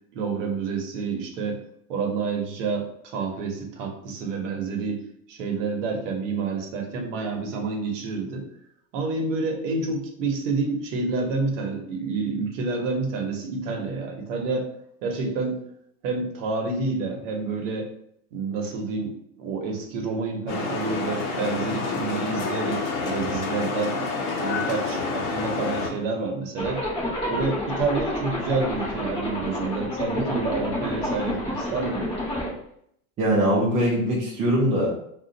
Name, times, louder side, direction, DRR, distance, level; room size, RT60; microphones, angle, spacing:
voice 1, 0.1-1.6 1.9-5.0 5.3-8.5 8.9-14.7 15.0-15.6 16.0-17.9 18.3-24.0 24.4-26.8 27.3-32.0, right 4 dB, 60° right, 2 dB, 0.9 m, -28 dB
Ambiente - nocturno tranquilo, 20.5-25.9, left 4 dB, 55° left, 0.9 m, -28 dB
Zipper (clothing), 26.6-32.5, left 1 dB, 15° left, 0.8 m, -29 dB
voice 2, 33.2-34.9, equal, 15° right, -5 dB, 0.4 m, -22 dB
2.5 x 2.4 x 3.9 m, 0.71 s
supercardioid pair, 155°, 42 cm